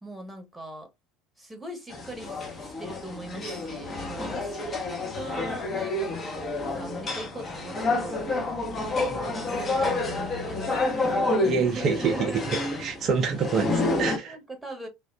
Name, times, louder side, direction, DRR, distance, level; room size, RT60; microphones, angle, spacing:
voice 1, 0.0-0.9 1.4-8.6 9.1-12.4 12.8-13.0 14.3-14.9, right 2 dB, 5° right, 1.1 m, -40 dB
sound 1, 1.9-14.2, left 2 dB, 30° left, 1.0 m, -29 dB
voice 2, 11.4-12.1 12.8-14.4, right 5 dB, 40° right, 0.6 m, -27 dB
3.5 x 2.4 x 2.2 m
figure-of-eight pair, 65°, 0 cm